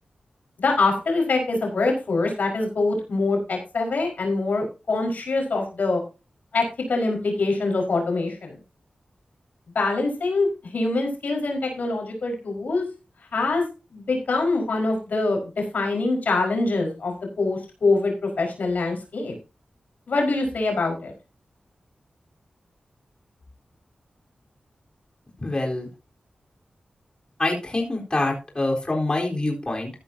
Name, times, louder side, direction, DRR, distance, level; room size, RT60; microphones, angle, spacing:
voice 1, 0.6-6.0 6.5-8.6 9.7-12.8 13.3-13.7 13.9-19.4 20.1-21.1, left 3 dB, 85° left, 1 dB, 4.7 m, -24 dB
voice 2, 25.4-25.9 27.4-29.9, left 2 dB, 35° left, 0 dB, 4.0 m, -25 dB
14.0 x 10.5 x 2.8 m, 0.30 s
wide cardioid pair, 65°, 3 cm